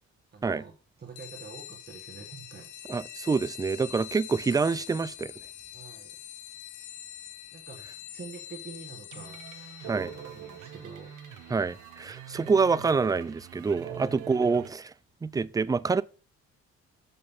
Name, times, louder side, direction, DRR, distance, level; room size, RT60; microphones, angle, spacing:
voice 1, 0.3-0.7 1.0-2.7 5.7-6.1 7.5-7.8 8.1-11.1 13.9-14.3, right 5 dB, 30° right, 1.6 m, -46 dB
sound 1, 1.2-13.3, left 12 dB, 90° left, 0.8 m, -45 dB
voice 2, 2.9-5.3 9.9-10.1 11.5-14.9 15.2-16.0, right 4 dB, 15° right, 0.3 m, -26 dB
sound 2, 9.1-14.7, right 10 dB, 80° right, 1.1 m, -44 dB
6.8 x 5.4 x 5.6 m
cardioid pair, 90°, 30 cm